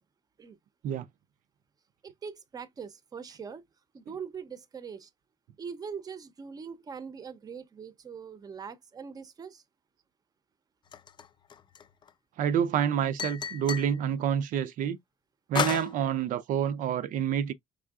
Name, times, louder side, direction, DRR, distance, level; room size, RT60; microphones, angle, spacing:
voice 1, 2.0-3.6 3.9-5.1 5.6-9.6, right 6 dB, 25° right, 0.7 m, -42 dB
sound 1, 10.9-12.1 13.2-14.0 15.6-15.9, left 7 dB, 30° left, 0.4 m, -32 dB
voice 2, 12.4-15.0 15.5-17.5, right 9 dB, 65° right, 0.5 m, -28 dB
5.4 x 3.6 x 2.4 m
cardioid pair, 150°, 15 cm